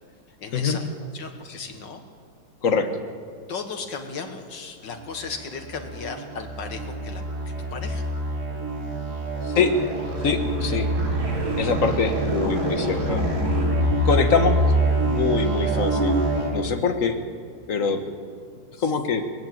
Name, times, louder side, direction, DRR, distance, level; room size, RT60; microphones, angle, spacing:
voice 1, 0.4-0.8 1.1-2.0 3.5-7.2 7.7-8.1, left 5 dB, 80° left, 5 dB, 2.3 m, -35 dB
sound 1, 5.1-16.5, right 1 dB, 60° right, 3.3 m, -25 dB
voice 2, 9.4-9.7 10.2-10.9 11.6-13.3 14.0-14.6 15.0-16.2 16.5-17.2 17.7-18.0 18.8-19.3, left 5 dB, 50° left, 7 dB, 1.6 m, -23 dB
19.5 x 14.5 x 9.2 m, 2.1 s
omnidirectional pair, 1.9 m